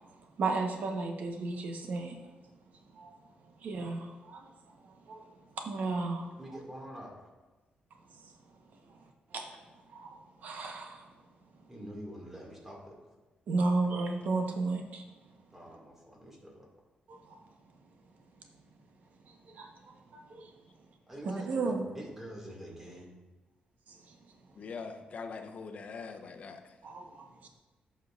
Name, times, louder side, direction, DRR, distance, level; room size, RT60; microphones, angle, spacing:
voice 1, 0.4-2.2 2.9-3.1 3.6-4.5 4.8-5.2 5.5-6.3 9.3-9.6 9.9-11.1 13.5-15.0 17.1-17.4 19.5-19.7 20.1-20.5 21.5-21.8 23.9-24.2 26.8-27.5, right 3 dB, 65° right, 3 dB, 1.1 m, -34 dB
voice 2, 6.4-7.3 11.7-13.1 15.5-16.7 21.1-23.1, equal, 10° right, -3 dB, 2.1 m, -46 dB
voice 3, 24.6-26.8, left 5 dB, 55° left, 5 dB, 0.8 m, -42 dB
14.0 x 5.5 x 2.5 m, 1.2 s
cardioid pair, 135°, 3 cm